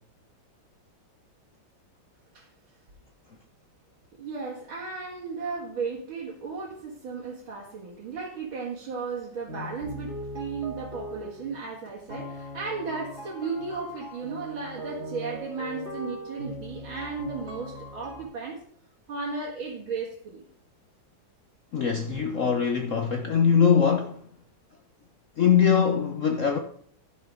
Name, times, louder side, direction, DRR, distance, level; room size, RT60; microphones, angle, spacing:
voice 1, 4.2-18.6 19.1-20.4 22.1-22.3, right 4 dB, 75° right, 2.6 m, -35 dB
sound 1, 9.5-11.7 12.1-18.2, equal, 35° right, 2.7 m, -39 dB
voice 2, 21.7-24.2 25.4-26.6, left 7 dB, 60° left, 0.8 m, -22 dB
11.5 x 10.0 x 3.7 m
omnidirectional pair, 2.2 m